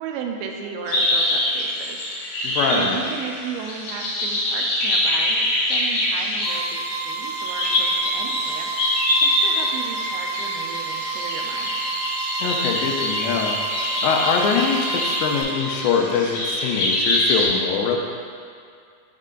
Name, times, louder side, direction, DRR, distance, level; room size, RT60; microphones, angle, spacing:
voice 1, 0.0-2.2 2.7-8.9 9.2-11.8, right 6 dB, 90° right, 2 dB, 2.9 m, -34 dB
sound 1, 0.9-17.5, left 1 dB, 65° left, 2.4 m, -24 dB
voice 2, 2.4-3.0 12.4-13.6 14.0-18.0, left 6 dB, 85° left, 1 dB, 2.9 m, -23 dB
sound 2, 6.4-15.4, right 6 dB, 70° right, 2.8 m, -31 dB
6.6 x 6.1 x 3.7 m, 2.3 s
omnidirectional pair, 5.0 m